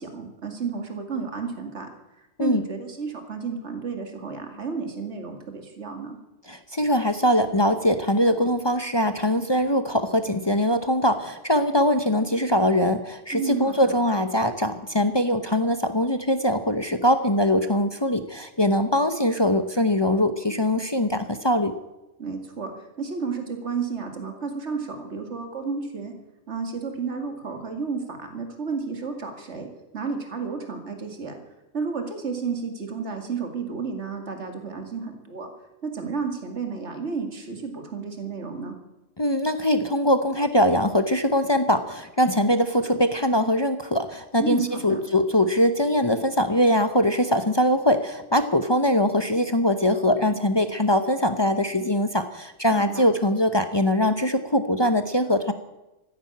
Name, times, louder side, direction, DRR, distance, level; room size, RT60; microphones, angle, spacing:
voice 1, 0.0-1.9 2.4-6.2 13.3-14.0 22.2-26.1 26.5-29.7 29.9-31.4 31.7-35.5 35.8-38.7 44.4-45.0 52.7-53.0, right 5 dB, 65° right, 4 dB, 2.5 m, -32 dB
voice 2, 6.5-21.8 39.2-55.5, left 1 dB, 25° left, 8 dB, 0.8 m, -22 dB
15.0 x 10.5 x 8.6 m, 0.97 s
omnidirectional pair, 1.3 m